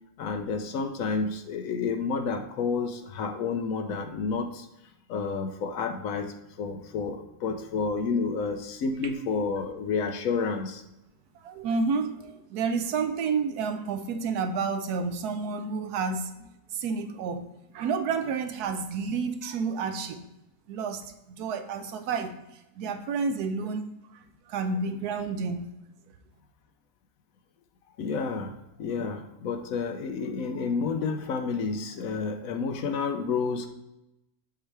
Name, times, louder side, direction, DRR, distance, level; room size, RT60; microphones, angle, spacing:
voice 1, 0.2-4.7 5.1-10.8 28.0-33.7, left 5 dB, 70° left, 7 dB, 1.0 m, -30 dB
voice 2, 11.4-20.2 20.7-21.0 21.3-22.4 22.8-23.9 24.5-25.7, right 5 dB, 90° right, 8 dB, 1.2 m, -30 dB
7.3 x 3.3 x 4.6 m, 0.91 s
omnidirectional pair, 1.6 m